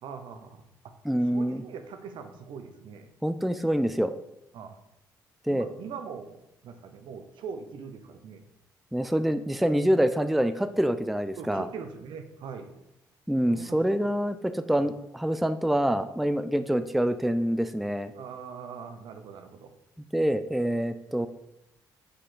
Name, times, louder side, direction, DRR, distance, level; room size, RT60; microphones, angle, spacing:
voice 1, 0.0-0.9 1.3-3.1 4.5-4.8 5.5-8.4 11.4-12.8 13.5-13.8 14.7-14.9 16.5-16.8 18.1-19.7, right 6 dB, 70° right, 7 dB, 0.8 m, -42 dB
voice 2, 1.0-1.6 3.2-4.1 5.5-5.7 8.9-11.7 13.3-18.1 20.1-21.3, equal, ahead, 10 dB, 0.4 m, -26 dB
6.5 x 5.1 x 3.9 m, 0.84 s
supercardioid pair, 65°, 8 cm